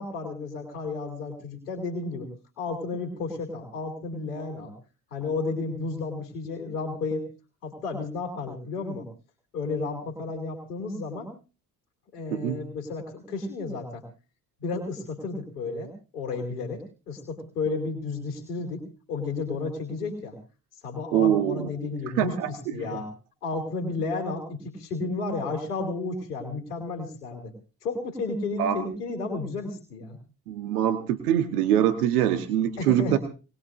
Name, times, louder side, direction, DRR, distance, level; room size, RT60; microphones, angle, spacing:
voice 1, 0.0-2.3 2.6-4.7 5.1-7.3 7.6-9.1 9.5-11.3 12.1-14.0 14.6-20.3 20.8-23.1 23.4-27.5 27.8-30.2 32.8-33.2, left 3 dB, 85° left, 2 dB, 3.2 m, -32 dB
voice 2, 21.1-21.7 22.2-22.7 28.6-28.9 30.5-33.2, right 10 dB, 80° right, 8 dB, 1.2 m, -24 dB
22.0 x 20.5 x 2.6 m, 0.36 s
hypercardioid pair, 45°, 45 cm